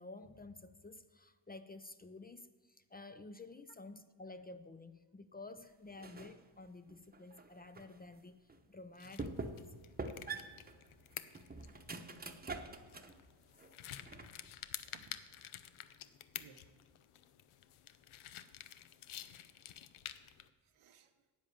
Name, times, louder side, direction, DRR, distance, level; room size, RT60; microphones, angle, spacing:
voice 1, 0.0-9.7, left 2 dB, 20° left, 11 dB, 0.4 m, -52 dB
sound 1, 6.0-6.4 6.9-8.0 8.5-8.6 9.2-9.7 10.0-13.2 13.6-14.5, right 3 dB, 20° right, 0.9 m, -45 dB
sound 2, 8.9-20.5, left 11 dB, 85° left, 0.7 m, -51 dB
voice 2, 14.8-15.2 15.4-15.6 16.4-16.6 19.1-19.2 19.5-20.0 20.4-21.1, right 7 dB, 85° right, 7 dB, 1.1 m, -63 dB
10.5 x 8.6 x 7.4 m, 1.4 s
cardioid pair, 95°, 49 cm